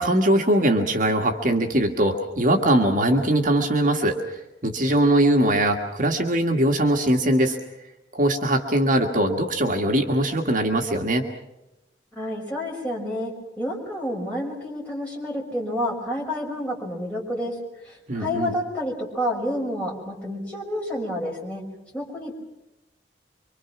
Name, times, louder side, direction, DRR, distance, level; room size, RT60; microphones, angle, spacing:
voice 1, 0.0-7.6 8.1-11.2 18.1-18.5, right 1 dB, 45° right, 3 dB, 1.8 m, -21 dB
voice 2, 12.1-21.6 21.9-22.3, left 1 dB, 10° left, -3 dB, 5.8 m, -29 dB
26.0 x 25.0 x 6.1 m, 0.94 s
head